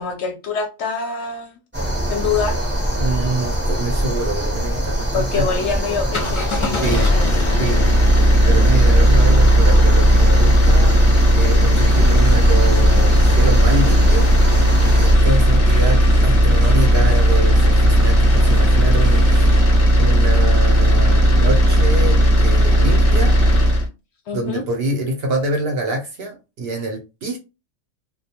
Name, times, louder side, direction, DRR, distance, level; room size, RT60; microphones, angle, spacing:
voice 1, 0.0-1.6 2.1-2.6 5.1-7.6 24.3-24.6, left 5 dB, 65° left, 0.8 m, -25 dB
sound 1, 1.7-15.2, equal, 15° right, 0.5 m, -23 dB
voice 2, 3.0-5.5 6.8-7.1 7.6-7.9 8.4-11.0 11.3-14.3 15.0-19.6 20.0-23.3 24.3-27.4, right 2 dB, 60° right, 0.7 m, -25 dB
sound 2, 6.0-23.9, equal, 40° left, 0.4 m, -14 dB
sound 3, 11.7-19.6, equal, 10° left, 0.8 m, -29 dB
2.2 x 2.2 x 2.8 m
omnidirectional pair, 1.4 m